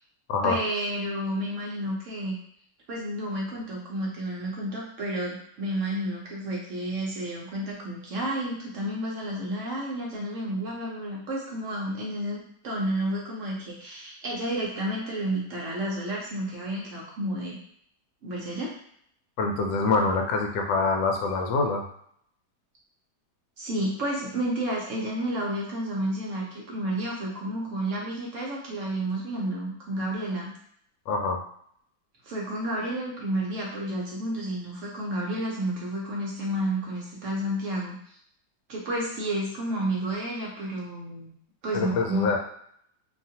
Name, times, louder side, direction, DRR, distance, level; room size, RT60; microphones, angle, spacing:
voice 1, 0.4-2.4 2.9-17.6 18.2-18.7 23.6-30.5 32.2-38.2 38.7-41.3 41.6-42.4, right 1 dB, 65° right, -3 dB, 0.7 m, -31 dB
voice 2, 19.4-21.9 31.1-31.4 41.7-42.4, left 3 dB, 80° left, 3 dB, 1.2 m, -25 dB
2.9 x 2.4 x 2.7 m, 0.66 s
omnidirectional pair, 2.0 m